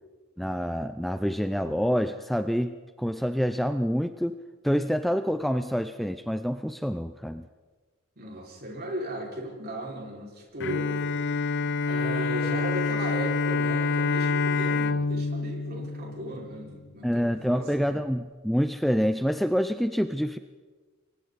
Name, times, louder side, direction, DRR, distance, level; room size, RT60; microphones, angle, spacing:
voice 1, 0.4-4.4 4.6-7.5 17.0-20.4, equal, ahead, 9 dB, 0.5 m, -27 dB
voice 2, 8.2-11.1 11.8-18.0, right 1 dB, 50° right, -2 dB, 5.5 m, -36 dB
Bowed string instrument, 10.6-16.8, left 4 dB, 55° left, 0.7 m, -27 dB
29.0 x 23.0 x 4.2 m, 1.3 s
head